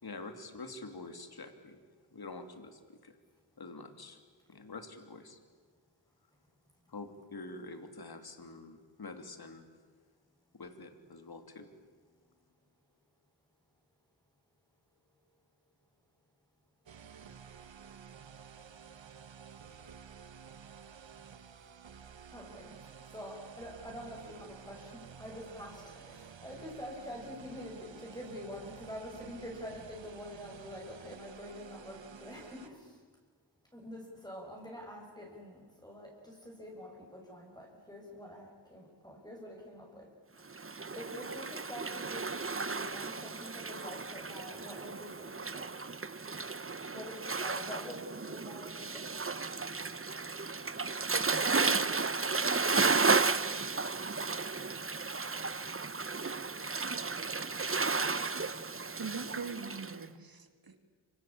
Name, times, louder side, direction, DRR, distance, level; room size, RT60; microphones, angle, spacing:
voice 1, 0.0-1.8 2.1-3.1 3.6-4.2 4.5-5.4 6.9-9.6 10.6-11.7, left 3 dB, 55° left, 8 dB, 3.0 m, -46 dB
sound 1, 16.9-32.7, right 7 dB, 85° right, 1.4 m, -52 dB
voice 2, 22.3-33.0 33.7-40.1 40.4-40.5 40.9-45.7 46.9-49.2, equal, 10° left, -1 dB, 6.5 m, -46 dB
Waves surf, 40.5-60.0, right 4 dB, 30° right, 1.2 m, -33 dB
voice 3, 59.0-60.9, right 5 dB, 55° right, 8 dB, 2.9 m, -42 dB
27.0 x 25.5 x 8.7 m, 1.5 s
wide cardioid pair, 80°, 44 cm